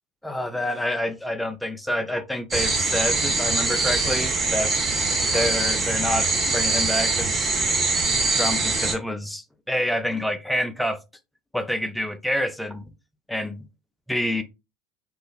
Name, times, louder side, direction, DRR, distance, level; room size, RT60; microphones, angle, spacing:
voice 1, 0.2-4.7 5.3-7.6 8.2-11.0 11.5-12.8 13.3-13.7 14.1-14.4, left 1 dB, 5° left, 0.5 m, -27 dB
sound 1, 2.5-8.9, right 3 dB, 30° right, 1.1 m, -23 dB
3.8 x 2.4 x 2.4 m
hypercardioid pair, 75°, 0 cm